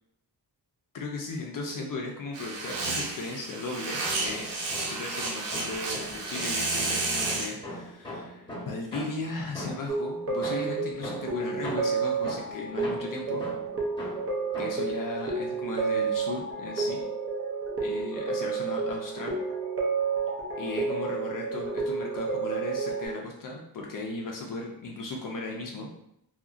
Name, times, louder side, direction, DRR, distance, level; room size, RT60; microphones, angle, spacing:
voice 1, 0.9-4.5 4.9-13.4 14.6-17.0 17.8-19.4 20.6-25.9, left 2 dB, 55° left, 0 dB, 0.5 m, -36 dB
sound 1, 2.3-7.5, right 3 dB, 85° right, 0.7 m, -31 dB
sound 2, 4.2-5.1 5.5-10.0 10.4-14.9, left 1 dB, 10° left, 1.0 m, -41 dB
sound 3, 9.9-23.1, right 4 dB, 35° right, 0.6 m, -30 dB
2.8 x 2.6 x 2.4 m, 0.76 s
wide cardioid pair, 120°, 41 cm